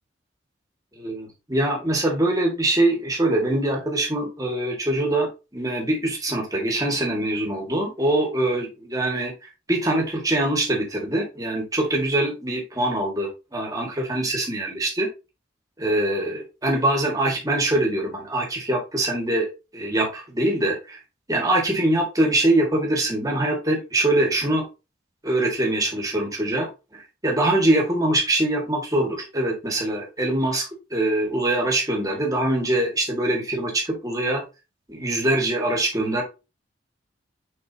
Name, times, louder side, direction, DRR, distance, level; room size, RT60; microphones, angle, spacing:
voice 1, 1.0-9.3 9.7-15.1 15.8-19.5 19.7-21.0 21.3-24.7 25.2-26.7 27.2-34.4 34.9-36.2, right 1 dB, 20° right, 0 dB, 2.0 m, -23 dB
6.5 x 5.4 x 2.9 m, 0.28 s
head